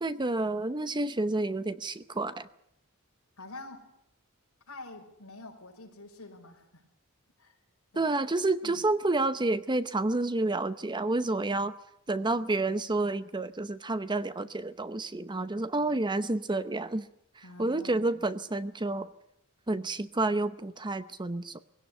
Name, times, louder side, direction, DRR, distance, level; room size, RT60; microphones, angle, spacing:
voice 1, 0.0-2.5 7.9-11.7 12.1-17.1 17.3-19.1 19.7-21.6, right 2 dB, 20° right, 13 dB, 0.8 m, -29 dB
voice 2, 3.4-3.9 4.7-6.8 7.4-7.6 7.9-8.1 8.6-8.8 14.4-14.5 15.8-15.9 17.4-18.2, left 2 dB, 70° left, 2 dB, 5.0 m, -47 dB
21.0 x 17.0 x 10.0 m, 0.75 s
head